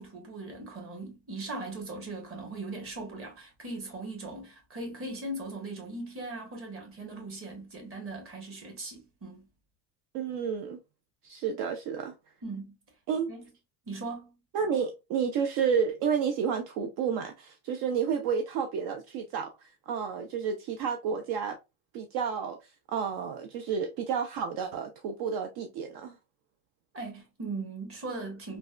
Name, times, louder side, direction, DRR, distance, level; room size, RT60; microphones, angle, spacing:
voice 1, 0.0-9.5 12.4-12.7 13.3-13.5 13.8-14.4 26.9-28.6, right 2 dB, 35° right, 1.3 m, -39 dB
voice 2, 10.1-10.8 11.2-12.1 13.1-13.3 14.5-21.6 21.9-22.6 22.9-26.2, right 7 dB, 65° right, 0.6 m, -31 dB
3.3 x 2.2 x 2.4 m
cardioid pair, 125°, 39 cm